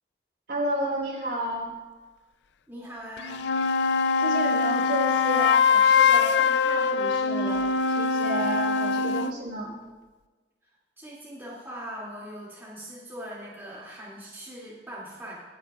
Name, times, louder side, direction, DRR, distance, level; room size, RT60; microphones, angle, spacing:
voice 1, 0.5-1.7 4.2-9.8, right 1 dB, 60° right, -3 dB, 3.9 m, -32 dB
voice 2, 2.7-3.4 11.0-15.4, equal, 15° right, -8 dB, 2.6 m, -41 dB
sound 1, 3.2-9.4, left 5 dB, 75° left, 0.4 m, -23 dB
23.5 x 8.7 x 2.5 m, 1.3 s
head